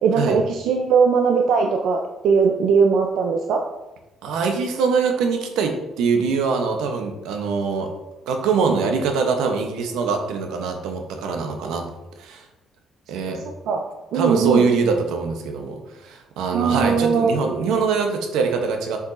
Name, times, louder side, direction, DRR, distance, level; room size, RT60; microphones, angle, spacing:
voice 1, 0.0-3.6 13.7-13.8 14.1-14.7 16.5-17.4, right 5 dB, 70° right, 2 dB, 0.6 m, -19 dB
voice 2, 4.2-7.9 8.3-11.9 12.2-12.4 13.1-13.4 14.1-19.0, right 5 dB, 90° right, 4 dB, 0.9 m, -23 dB
6.8 x 5.2 x 2.6 m, 1.0 s
cardioid pair, 115°, 0 cm